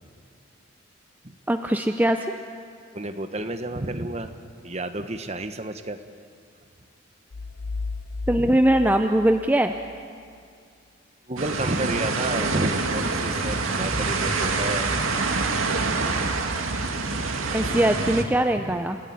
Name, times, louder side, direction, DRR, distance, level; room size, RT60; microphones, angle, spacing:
voice 1, 1.5-2.2 8.3-9.7 17.5-19.0, right 1 dB, 10° right, 6 dB, 0.6 m, -21 dB
voice 2, 2.9-4.3 4.6-6.0 8.4-8.6 11.3-15.1 18.6-18.7, right 2 dB, 30° right, 8 dB, 1.2 m, -30 dB
sound 1, 7.3-10.0, left 3 dB, 55° left, 0.5 m, -34 dB
sound 2, 11.4-18.2, right 3 dB, 85° right, 2.1 m, -26 dB
30.0 x 15.5 x 9.5 m, 2.3 s
head